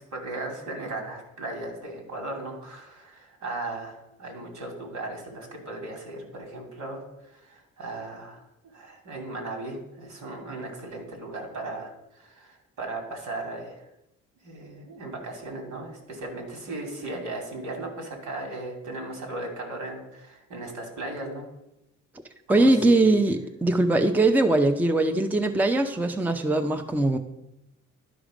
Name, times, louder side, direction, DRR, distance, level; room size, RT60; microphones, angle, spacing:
voice 1, 0.0-8.4 8.7-13.8 14.4-21.5 22.5-23.2, right 2 dB, 75° right, 2 dB, 2.8 m, -37 dB
voice 2, 22.5-27.2, right 2 dB, 5° right, 6 dB, 0.6 m, -21 dB
11.5 x 5.0 x 5.0 m, 0.87 s
cardioid pair, 90°, 30 cm